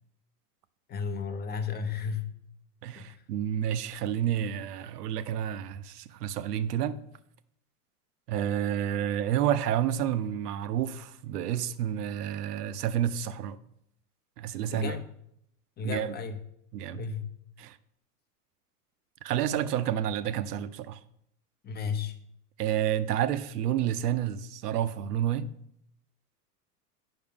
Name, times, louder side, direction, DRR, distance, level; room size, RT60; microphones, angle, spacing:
voice 1, 0.9-2.3 3.0-3.2 14.7-15.1 15.8-16.4 16.9-17.3 21.6-22.2, left 6 dB, 20° left, 0.7 m, -33 dB
voice 2, 2.8-7.0 8.3-13.6 14.4-15.0 15.8-16.1 16.7-17.1 17.6-17.8 19.2-21.0 22.6-25.5, right 10 dB, 85° right, 0.7 m, -30 dB
8.9 x 5.7 x 3.6 m
hypercardioid pair, 110°, 46 cm